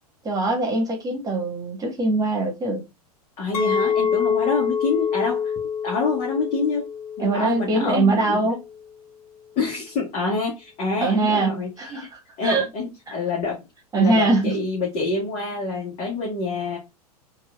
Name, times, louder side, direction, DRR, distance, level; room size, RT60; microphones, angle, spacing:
voice 1, 0.2-2.8 7.2-8.6 11.0-12.6 13.9-14.6, right 3 dB, 20° right, 1.5 m, -22 dB
voice 2, 3.4-5.5 5.8-6.9 7.2-8.4 9.6-12.1 12.4-13.6 14.0-16.8, left 4 dB, 35° left, 1.3 m, -27 dB
Chink clink, 3.5-8.7, left 7 dB, 70° left, 0.7 m, -26 dB
4.6 x 2.5 x 2.2 m
figure-of-eight pair, 90°, 20 cm